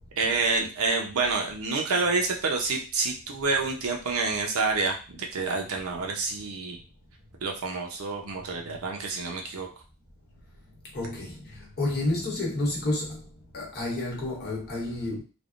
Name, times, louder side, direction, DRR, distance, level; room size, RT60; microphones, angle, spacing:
voice 1, 0.2-6.8 7.4-9.7, right 3 dB, 70° right, 0.6 m, -28 dB
voice 2, 10.9-13.2 13.5-15.2, left 2 dB, 50° left, 1.0 m, -30 dB
3.3 x 2.0 x 2.4 m
head